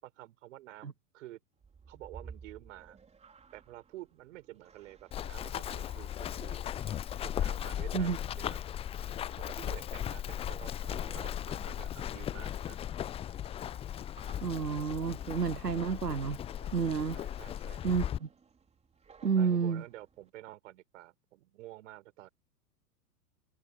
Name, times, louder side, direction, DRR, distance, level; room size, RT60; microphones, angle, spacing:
voice 1, 0.0-1.4 1.9-3.0 3.5-6.6 7.2-8.6 9.4-12.8 17.1-17.8 19.4-22.3, right 16 dB, 50° right, 6.9 m, -50 dB
sound 1, 1.6-20.3, right 5 dB, 15° right, 3.7 m, -58 dB
Run, 5.1-18.2, left 10 dB, 15° left, 0.6 m, -37 dB
voice 2, 14.4-16.4 16.7-17.2 17.8-18.3 19.2-19.8, right 6 dB, 85° right, 0.8 m, -30 dB
figure-of-eight pair, 100°, 47 cm